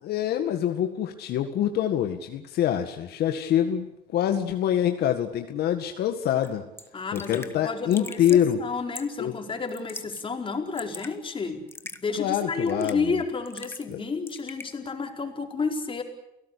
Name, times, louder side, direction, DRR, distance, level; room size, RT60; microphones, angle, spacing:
voice 1, 0.0-6.6 7.1-8.6 9.2-9.3 12.2-13.0 13.9-14.0, left 10 dB, 70° left, 6 dB, 1.9 m, -25 dB
Raindrop / Drip, 6.4-6.5 6.8-6.9 7.1-7.5 7.9-8.5 8.9-9.2 9.7-10.2 10.5-11.1 11.7-12.0 12.7-13.1 13.5-14.0 14.3-14.7, left 3 dB, 15° left, 1.8 m, -41 dB
voice 2, 6.9-11.6 12.0-16.0, left 4 dB, 30° left, 3 dB, 4.7 m, -31 dB
29.5 x 17.5 x 8.5 m, 0.87 s
cardioid pair, 110°, 17 cm